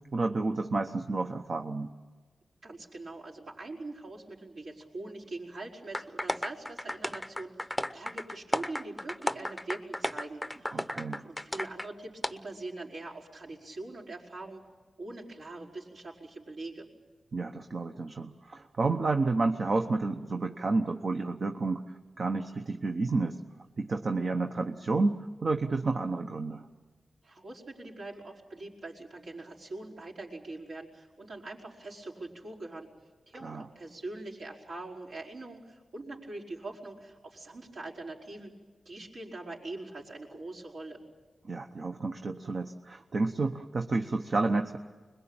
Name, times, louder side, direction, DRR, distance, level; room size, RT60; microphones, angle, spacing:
voice 1, 0.1-1.9 10.7-11.3 17.3-21.8 22.2-23.4 23.8-26.7 33.4-33.7 41.4-44.8, right 3 dB, 55° right, 4 dB, 1.0 m, -30 dB
voice 2, 2.6-10.9 11.2-14.6 15.0-16.9 27.2-32.9 33.3-38.5 38.8-41.0, right 2 dB, 75° right, -4 dB, 5.0 m, -43 dB
sound 1, 5.9-11.9 12.2-12.3, left 1 dB, 5° left, 0.7 m, -34 dB
25.5 x 21.5 x 8.9 m, 1.3 s
cardioid pair, 80°, 0 cm